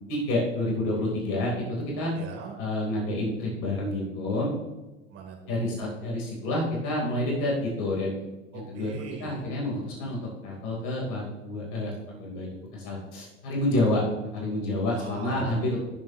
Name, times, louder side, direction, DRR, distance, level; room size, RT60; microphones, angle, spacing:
voice 1, 0.1-2.1 2.6-4.5 5.5-8.2 8.5-8.9 9.2-14.0 14.3-15.8, left 1 dB, 50° left, -3 dB, 4.1 m, -29 dB
voice 2, 2.2-2.6 5.1-5.7 8.5-9.5 14.9-15.7, right 5 dB, 40° right, 0 dB, 3.6 m, -40 dB
18.0 x 7.5 x 3.1 m, 1.1 s
figure-of-eight pair, 85°, 38 cm